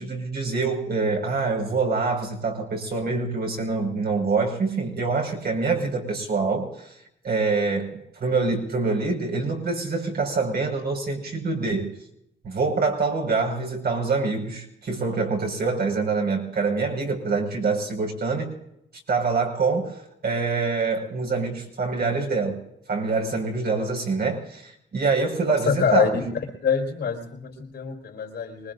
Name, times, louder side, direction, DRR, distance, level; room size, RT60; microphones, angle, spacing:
voice 1, 0.0-7.0 7.2-11.9 12.4-18.5 19.1-22.6 22.9-26.2, right 4 dB, 55° right, 1 dB, 5.5 m, -25 dB
voice 2, 25.6-26.2 26.6-28.7, left 6 dB, 60° left, -1 dB, 4.3 m, -25 dB
25.0 x 21.0 x 2.6 m, 0.80 s
cardioid pair, 90°, 20 cm